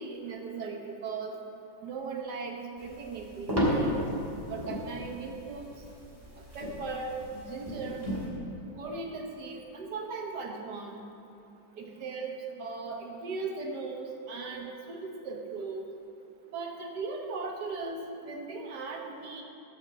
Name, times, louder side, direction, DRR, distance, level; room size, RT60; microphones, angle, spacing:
voice 1, 0.0-1.3 1.8-4.0 4.5-5.7 6.5-8.1 8.8-11.0 11.8-15.8 16.5-19.4, right 4 dB, 65° right, 2 dB, 1.6 m, -38 dB
sound 1, 2.8-8.3, equal, 10° right, 2.4 m, -33 dB
13.0 x 5.3 x 7.4 m, 2.8 s
omnidirectional pair, 2.0 m